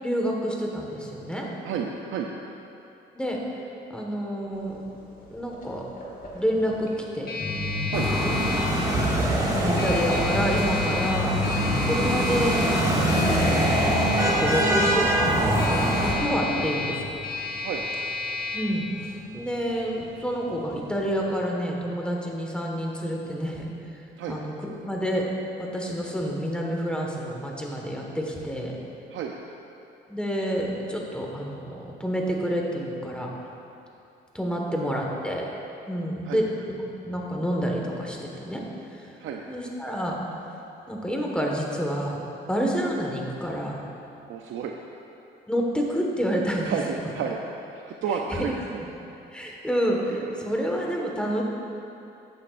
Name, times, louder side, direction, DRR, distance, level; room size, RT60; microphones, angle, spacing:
voice 1, 0.0-1.5 3.1-3.4 3.9-4.8 5.3-5.8 6.3-7.3 9.5-11.4 11.8-12.6 13.1-13.7 14.2-17.0 18.5-23.6 24.3-25.2 25.6-28.8 30.1-33.3 34.3-35.5 35.9-38.6 38.9-39.1 39.5-40.2 40.9-42.2 42.5-43.8 45.5-46.7 48.4-48.5 49.3-51.4, equal, 5° left, -1 dB, 1.5 m, -28 dB
voice 2, 1.6-2.3 7.9-8.1 11.9-12.0 16.5-16.7 17.6-17.9 24.2-24.4 29.1-29.3 34.7-34.9 36.2-36.4 39.2-39.4 44.3-44.7 46.6-47.4 47.7-48.8 50.1-50.3, right 6 dB, 80° right, 1 dB, 0.6 m, -31 dB
sound 1, 4.5-21.4, left 3 dB, 45° left, 1.9 m, -34 dB
sound 2, 7.4-17.6, left 3 dB, 20° left, 1.0 m, -33 dB
sound 3, 7.9-16.2, right 1 dB, 20° right, 2.0 m, -24 dB
13.5 x 8.7 x 2.5 m, 2.8 s
cardioid pair, 90°, 20 cm